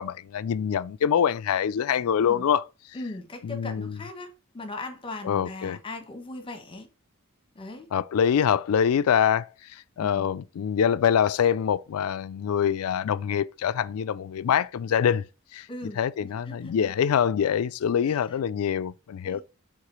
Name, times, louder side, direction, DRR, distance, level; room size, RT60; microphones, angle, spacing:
voice 1, 0.0-2.7 3.4-4.0 5.2-5.8 7.9-9.5 10.0-15.2 15.5-15.7 16.0-19.4, left 8 dB, 80° left, 0.4 m, -24 dB
voice 2, 2.9-6.9 7.5-7.9 10.0-10.3 15.7-16.9 18.0-18.3 19.2-19.4, left 2 dB, 25° left, 1.0 m, -39 dB
4.9 x 3.7 x 5.3 m
head